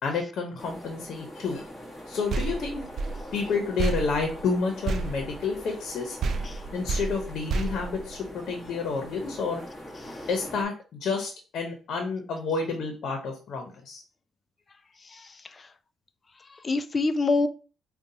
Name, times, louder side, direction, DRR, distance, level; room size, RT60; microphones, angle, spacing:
voice 1, 0.0-1.7 2.1-2.8 3.3-6.2 6.7-9.6 10.3-14.0, left 4 dB, 65° left, 3 dB, 0.8 m, -30 dB
sound 1, 0.6-10.6, equal, 5° left, 1.4 m, -43 dB
sound 2, 2.3-5.9 6.2-8.7, right 4 dB, 60° right, 0.4 m, -31 dB
voice 2, 15.0-15.7 16.4-17.5, left 3 dB, 35° left, 11 dB, 0.4 m, -28 dB
5.1 x 2.3 x 2.8 m, 0.35 s
cardioid pair, 90°, 0 cm